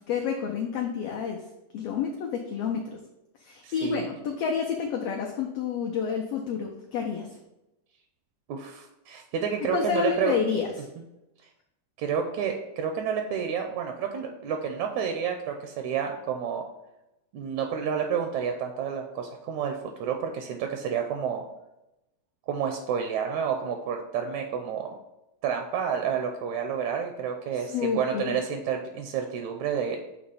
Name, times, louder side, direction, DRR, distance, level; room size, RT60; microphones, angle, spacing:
voice 1, 0.1-1.4 1.7-3.0 3.4-7.3 9.6-10.7 27.7-28.3, left 7 dB, 85° left, 1 dB, 1.3 m, -29 dB
voice 2, 3.6-4.0 8.5-10.4 12.0-16.6 17.3-21.4 22.5-24.9 25.4-30.0, right 7 dB, 80° right, 4 dB, 1.8 m, -30 dB
6.7 x 2.9 x 5.4 m, 0.92 s
omnidirectional pair, 3.5 m